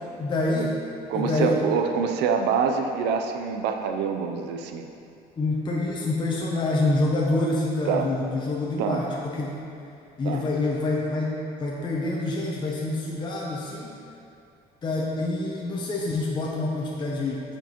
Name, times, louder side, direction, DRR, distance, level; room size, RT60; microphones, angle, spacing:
voice 1, 0.2-0.8 1.1-1.5 5.4-9.6 10.2-14.0 14.8-17.4, left 2 dB, 25° left, -3 dB, 0.6 m, -26 dB
voice 2, 1.1-4.9 7.9-8.1 8.8-9.0 10.2-10.5, right 6 dB, 90° right, 5 dB, 0.5 m, -25 dB
8.0 x 4.5 x 3.0 m, 2.6 s
cardioid pair, 110°, 17 cm